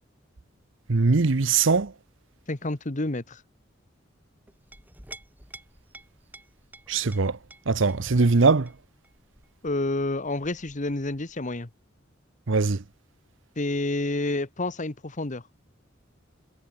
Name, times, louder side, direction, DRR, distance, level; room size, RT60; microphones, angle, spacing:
voice 1, 0.9-1.9 6.9-7.4 7.7-8.7 12.5-12.8, right 4 dB, 75° right, 0.8 m, -21 dB
voice 2, 2.5-3.4 9.6-11.7 13.6-15.4, left 2 dB, 40° left, 1.4 m, -29 dB
Chink clink, 4.5-11.6, right 2 dB, 10° right, 4.4 m, -51 dB
head